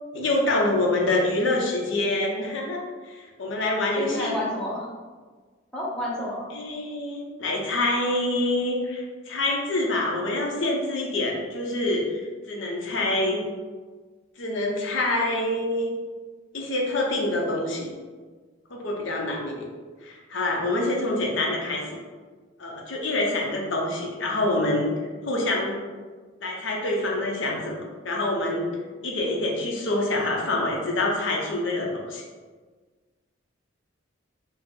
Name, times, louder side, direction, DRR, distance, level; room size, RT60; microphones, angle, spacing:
voice 1, 0.1-4.3 6.5-13.4 14.4-15.9 16.5-17.9 18.7-19.7 20.0-21.8 22.6-24.9 25.2-25.8 26.4-28.7 29.0-32.2, left 2 dB, 65° left, -1 dB, 0.7 m, -26 dB
voice 2, 4.0-4.9 5.7-6.5, left 1 dB, 5° left, -6 dB, 0.6 m, -30 dB
4.2 x 2.0 x 3.6 m, 1.4 s
head